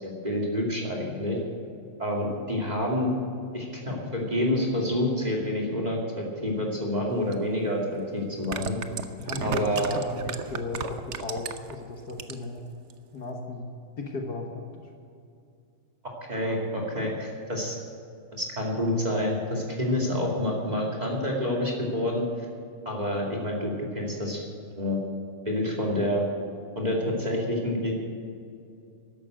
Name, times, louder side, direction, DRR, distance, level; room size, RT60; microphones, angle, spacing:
voice 1, 0.0-1.4 2.0-3.1 3.5-8.8 9.4-10.0 16.3-17.8 18.3-22.2 22.9-25.0 25.5-26.2 26.8-27.9, left 1 dB, 20° right, -1 dB, 2.4 m, -28 dB
sound 1, 7.3-7.4 8.3-11.7 12.1-12.6 12.9-13.0, right 7 dB, 60° right, 0.7 m, -34 dB
voice 2, 9.2-12.7 13.1-14.9, left 3 dB, 55° left, 2 dB, 1.8 m, -36 dB
13.0 x 11.5 x 7.8 m, 2.5 s
omnidirectional pair, 2.2 m